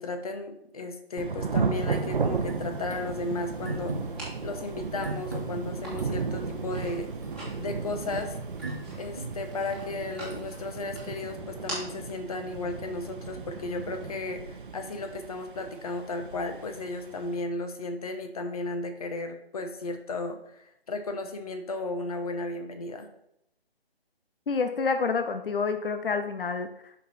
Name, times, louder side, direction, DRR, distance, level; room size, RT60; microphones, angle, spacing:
voice 1, 0.0-3.9 4.4-7.1 7.6-8.3 9.0-23.1, left 2 dB, 35° left, 6 dB, 1.2 m, -34 dB
Thunder / Rain, 1.2-17.4, right 5 dB, 55° right, 0.9 m, -35 dB
sound 1, 1.6-14.1, left 1 dB, 5° left, 2.0 m, -46 dB
sound 2, 1.7-11.3, right 2 dB, 20° right, 0.5 m, -42 dB
voice 2, 24.5-27.1, left 4 dB, 60° left, 8 dB, 0.8 m, -28 dB
11.5 x 5.5 x 4.4 m, 0.75 s
figure-of-eight pair, 160°, 31 cm